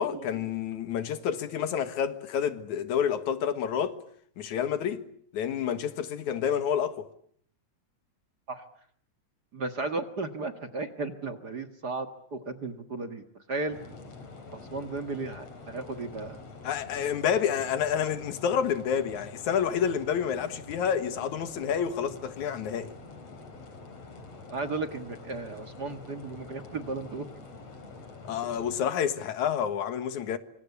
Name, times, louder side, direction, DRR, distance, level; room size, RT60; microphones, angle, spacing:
voice 1, 0.0-4.0 4.4-5.1 5.3-7.1 16.6-22.9 28.2-30.4, left 8 dB, 80° left, 2.9 m, -29 dB
voice 2, 9.5-13.8 14.5-16.4 24.5-27.2, right 3 dB, 40° right, 1.8 m, -35 dB
sound 1, 13.7-28.9, left 3 dB, 55° left, 4.7 m, -46 dB
26.0 x 25.5 x 8.3 m
omnidirectional pair, 3.4 m